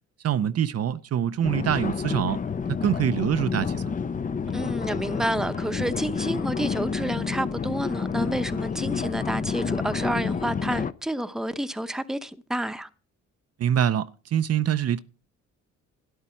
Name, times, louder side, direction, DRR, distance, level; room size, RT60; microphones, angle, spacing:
voice 1, 0.2-2.4 2.8-3.9 13.6-15.0, right 10 dB, 55° right, 0.6 m, -25 dB
sound 1, 1.4-10.9, left 6 dB, 25° left, 0.6 m, -29 dB
voice 2, 4.5-12.9, right 1 dB, ahead, 0.8 m, -29 dB
12.5 x 10.5 x 4.4 m
cardioid pair, 90°, 30 cm